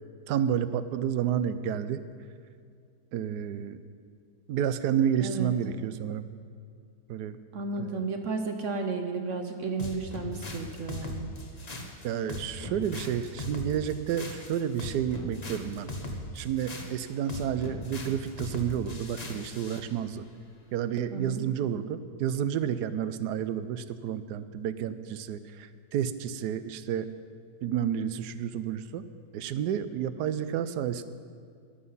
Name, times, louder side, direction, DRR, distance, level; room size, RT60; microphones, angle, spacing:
voice 1, 0.3-2.0 3.1-3.8 4.5-6.3 7.1-7.4 7.8-8.0 12.0-15.9 16.3-20.2 20.7-27.1 27.6-29.0 29.3-31.0, right 9 dB, 75° right, 13 dB, 1.1 m, -30 dB
voice 2, 7.5-11.3 21.1-21.4, right 4 dB, 55° right, 5 dB, 0.9 m, -33 dB
sound 1, 9.8-19.9, left 1 dB, 25° left, 1.0 m, -39 dB
14.0 x 11.5 x 5.5 m, 2.2 s
omnidirectional pair, 1.9 m